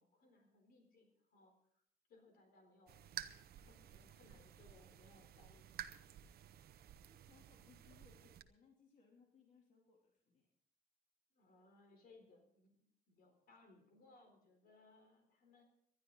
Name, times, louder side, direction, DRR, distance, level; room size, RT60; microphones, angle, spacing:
voice 1, 0.0-1.8 2.1-3.0 3.6-6.2 11.3-15.6, left 2 dB, 75° left, 5 dB, 3.9 m, -67 dB
sound 1, 2.9-8.4, right 10 dB, 85° right, 0.9 m, -53 dB
voice 2, 7.0-10.5, left 5 dB, 50° left, -1 dB, 3.2 m, -68 dB
19.5 x 12.0 x 4.0 m, 0.66 s
cardioid pair, 155°, 16 cm